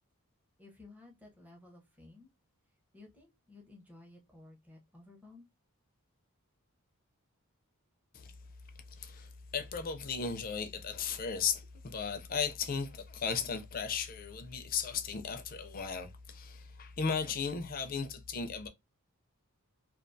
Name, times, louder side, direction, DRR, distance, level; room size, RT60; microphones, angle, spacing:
voice 1, 0.6-2.3 2.9-5.5, left 2 dB, 5° right, 0.6 m, -55 dB
voice 2, 8.9-18.7, left 6 dB, 40° left, 0.4 m, -36 dB
2.3 x 2.3 x 2.5 m
head